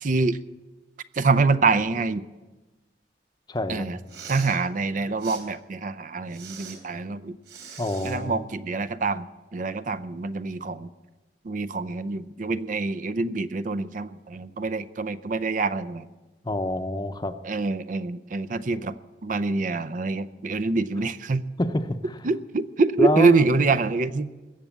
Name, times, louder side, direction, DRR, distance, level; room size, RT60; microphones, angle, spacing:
voice 1, 0.0-0.4 1.1-2.2 3.7-4.0 4.3-7.4 8.0-10.9 11.4-16.1 17.4-18.9 19.2-21.5 22.2-24.3, right 3 dB, 45° right, 13 dB, 0.5 m, -25 dB
voice 2, 3.5-3.9 7.8-8.4 16.4-17.3 21.6-22.0 23.0-23.4, left 1 dB, 25° left, 9 dB, 0.7 m, -26 dB
Respiratory sounds, 4.0-4.6 5.2-5.4 6.3-6.8 7.4-8.2, right 6 dB, 75° right, 3.4 m, -42 dB
21.5 x 8.0 x 7.3 m, 1.2 s
head